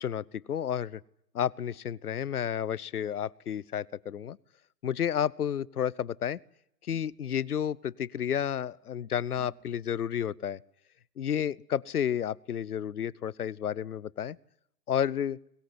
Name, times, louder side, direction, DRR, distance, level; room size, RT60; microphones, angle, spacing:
voice 1, 0.0-1.0 1.3-4.4 4.8-6.4 6.9-10.6 11.2-14.4 14.9-15.4, left 9 dB, 65° left, 25 dB, 0.9 m, -31 dB
sound 1, 6.9-7.3 9.4-9.7, right 4 dB, 50° right, 6.0 m, -56 dB
22.0 x 21.5 x 9.7 m, 0.76 s
figure-of-eight pair, 125°, 49 cm